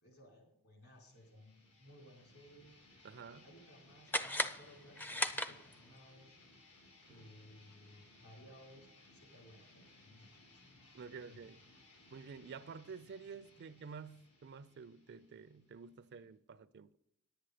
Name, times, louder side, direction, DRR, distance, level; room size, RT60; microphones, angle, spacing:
voice 1, 0.0-2.7 3.4-6.4 7.1-10.3 10.5-10.6 11.2-11.4 12.6-12.8 13.6-13.7, equal, 70° left, 4.1 m, -60 dB
sound 1, 0.9-16.3, left 2 dB, 90° left, 3.7 m, -63 dB
voice 2, 3.0-3.5 7.1-7.3 10.9-11.6 12.1-17.0, right 5 dB, 50° right, 0.4 m, -50 dB
sound 2, 4.1-6.0, left 1 dB, 10° left, 0.4 m, -37 dB
10.5 x 8.9 x 4.9 m
head